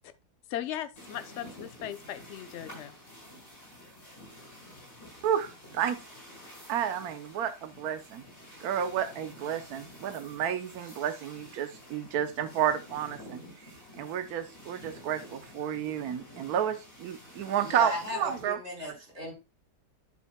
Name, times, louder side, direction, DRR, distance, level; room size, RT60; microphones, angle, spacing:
voice 1, 0.5-3.0, left 11 dB, 60° left, 0.7 m, -38 dB
sound 1, 1.0-18.4, left 1 dB, 30° left, 5.9 m, -50 dB
voice 2, 5.2-6.0 6.7-8.2 8.6-13.4 14.0-18.9, right 9 dB, 65° right, 1.2 m, -31 dB
voice 3, 17.6-19.3, equal, 35° right, 5.1 m, -35 dB
11.0 x 6.8 x 2.2 m
omnidirectional pair, 1.8 m